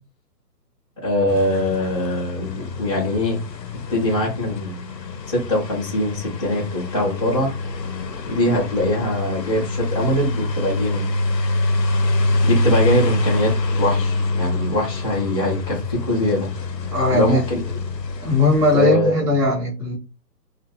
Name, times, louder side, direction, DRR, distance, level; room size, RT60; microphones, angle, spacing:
voice 1, 1.0-3.4 3.9-4.8 5.3-7.5 8.3-11.1 12.4-16.5 17.1-17.6 18.7-19.3, left 1 dB, 20° left, -8 dB, 0.5 m, -22 dB
sound 1, 1.3-18.9, left 2 dB, 80° left, 0.7 m, -25 dB
voice 2, 16.9-17.4 18.2-20.0, left 2 dB, 10° right, -10 dB, 0.8 m, -19 dB
2.9 x 2.4 x 2.8 m, 0.30 s
figure-of-eight pair, 130°, 50 cm